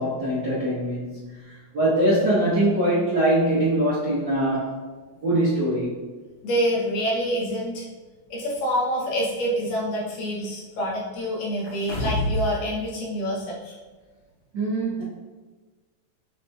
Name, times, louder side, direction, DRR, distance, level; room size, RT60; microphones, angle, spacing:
voice 1, 0.0-4.8 5.2-6.1 14.5-15.0, right 1 dB, 90° right, -11 dB, 1.0 m, -23 dB
voice 2, 6.4-7.8 8.3-13.7, equal, 75° left, -4 dB, 2.2 m, -26 dB
sound 1, 11.6-12.5 12.9-13.0, equal, 50° left, 1.5 m, -26 dB
7.9 x 2.7 x 2.3 m, 1.3 s
omnidirectional pair, 4.2 m